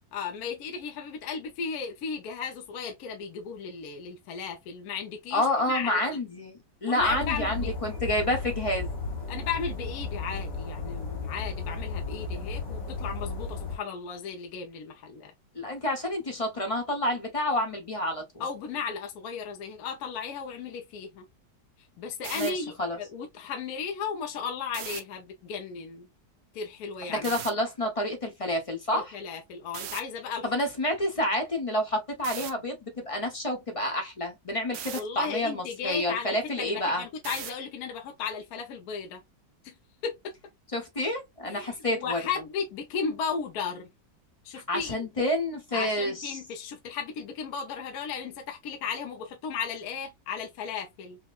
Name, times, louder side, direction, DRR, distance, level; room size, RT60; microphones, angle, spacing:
voice 1, 0.1-6.0 6.9-7.7 9.3-15.3 18.4-21.3 22.0-26.1 26.5-27.4 28.9-30.5 34.9-39.2 39.6-39.8 40.0-40.3 41.4-43.9 44.4-45.0 45.7-51.2, left 6 dB, 65° left, 1.1 m, -35 dB
voice 2, 5.3-8.9 15.5-18.2 22.3-23.0 27.1-29.2 30.4-37.0 40.7-42.2 44.5-46.4, left 1 dB, 25° left, 0.8 m, -29 dB
sound 1, 7.0-13.8, left 3 dB, 80° left, 2.5 m, -34 dB
sound 2, 22.1-22.5 24.7-25.0 27.2-27.5 29.7-30.0 32.2-32.5 34.7-35.0 37.2-37.6, right 10 dB, 90° right, 1.3 m, -37 dB
5.4 x 2.2 x 2.4 m
omnidirectional pair, 1.9 m